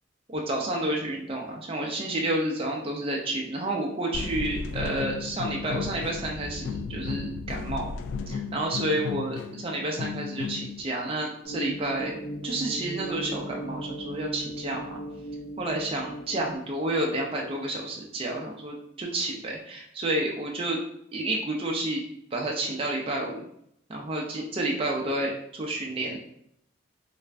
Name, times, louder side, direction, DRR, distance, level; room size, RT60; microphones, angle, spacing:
voice 1, 0.3-7.9 8.3-15.0 15.6-20.8 21.1-22.0 22.3-23.4 23.9-26.2, right 1 dB, 30° right, -1 dB, 0.4 m, -30 dB
sound 1, 4.1-10.8, left 5 dB, 75° left, 0.3 m, -34 dB
sound 2, 11.4-16.6, right 1 dB, 55° left, 1.3 m, -37 dB
3.2 x 2.4 x 3.3 m, 0.72 s
head